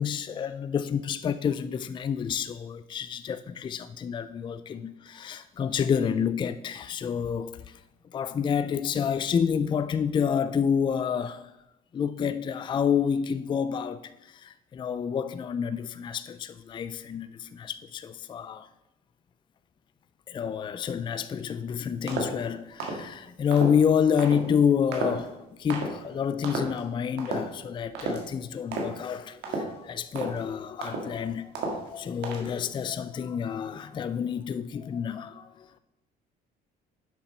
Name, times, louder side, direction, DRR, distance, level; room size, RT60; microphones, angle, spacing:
voice 1, 0.0-7.8 8.1-11.4 11.9-18.7 20.3-35.8, left 7 dB, 30° left, 0.4 m, -29 dB
sound 1, 22.1-22.4 22.8-23.1 23.5-23.8 24.2-24.4 24.9-25.3 25.7-25.9 26.4-26.8 27.2-27.5 28.0-28.3 28.7-29.0 29.4-29.8 30.2-30.4 30.8-31.2 31.6-31.9 32.2-32.6, right 3 dB, 80° right, 1.9 m, -32 dB
7.2 x 6.0 x 5.1 m
cardioid pair, 110°, 17 cm